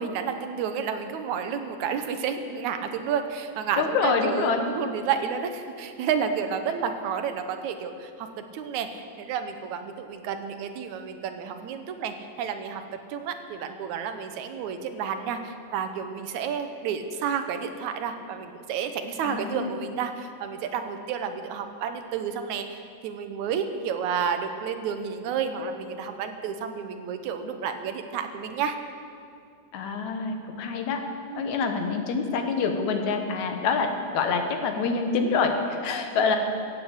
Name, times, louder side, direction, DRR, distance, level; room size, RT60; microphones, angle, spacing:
voice 1, 0.0-8.3 8.5-12.8 13.1-28.8 31.3-31.5, right 7 dB, 80° right, 7 dB, 2.2 m, -31 dB
voice 2, 3.8-4.7 19.2-19.7 29.7-31.0 31.4-36.4, left 5 dB, 75° left, 5 dB, 2.5 m, -26 dB
15.5 x 7.8 x 8.1 m, 2.4 s
omnidirectional pair, 3.4 m